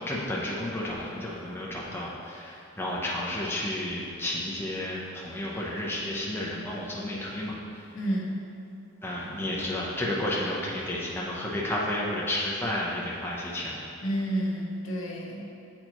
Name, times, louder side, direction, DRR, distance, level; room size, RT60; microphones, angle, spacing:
voice 1, 0.0-7.8 9.0-13.9, left 1 dB, 10° left, -5 dB, 0.6 m, -32 dB
voice 2, 7.9-8.4 14.0-15.4, equal, 70° left, -2 dB, 0.9 m, -30 dB
7.7 x 4.4 x 2.9 m, 2.6 s
head